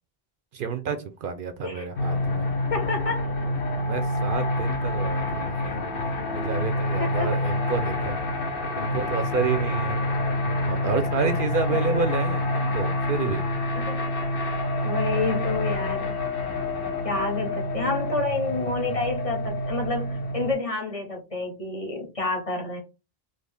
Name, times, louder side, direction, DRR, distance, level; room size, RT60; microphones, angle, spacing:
voice 1, 0.5-2.5 3.8-5.8 6.3-8.2 8.8-10.0 10.7-13.4, right 5 dB, 65° right, 8 dB, 0.7 m, -29 dB
sound 1, 2.0-20.5, left 1 dB, 65° left, 1.0 m, -27 dB
voice 2, 2.7-3.3 7.0-7.3 11.7-12.0 13.7-14.3 14.8-16.2 17.0-22.8, left 3 dB, 35° left, 1 dB, 1.0 m, -29 dB
3.9 x 2.1 x 3.3 m, 0.29 s
omnidirectional pair, 1.0 m